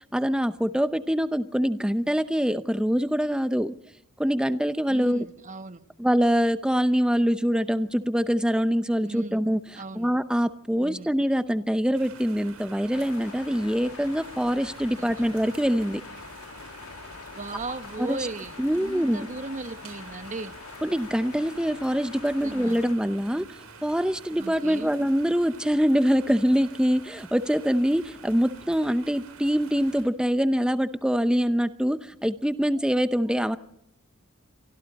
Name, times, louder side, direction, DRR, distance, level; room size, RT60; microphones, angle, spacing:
voice 1, 0.1-3.7 4.2-5.3 6.0-9.6 10.0-16.0 18.0-18.2 18.6-19.3 20.8-23.5 23.8-33.6, equal, 5° right, 0.7 m, -24 dB
voice 2, 4.9-5.8 9.0-9.4 9.7-10.1 10.8-11.1 15.0-15.4 17.4-20.5 22.4-22.8 24.4-24.9, right 2 dB, 35° right, 1.3 m, -37 dB
sound 1, 11.9-30.0, right 5 dB, 85° right, 7.2 m, -48 dB
sound 2, 12.9-23.0, left 5 dB, 80° left, 1.6 m, -44 dB
28.5 x 24.0 x 4.2 m
head